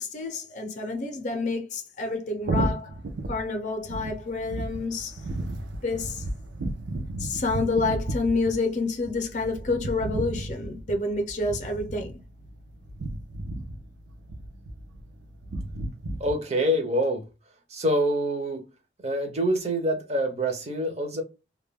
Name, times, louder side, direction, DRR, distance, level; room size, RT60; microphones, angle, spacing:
voice 1, 0.0-3.0 3.3-5.2 5.8-6.3 7.2-12.2, left 3 dB, 40° left, 0.5 m, -28 dB
sound 1, 2.4-16.3, right 2 dB, 85° right, 0.5 m, -34 dB
voice 2, 16.2-17.3 17.7-18.6 19.0-21.2, equal, 35° right, 0.5 m, -26 dB
2.2 x 2.1 x 3.3 m
head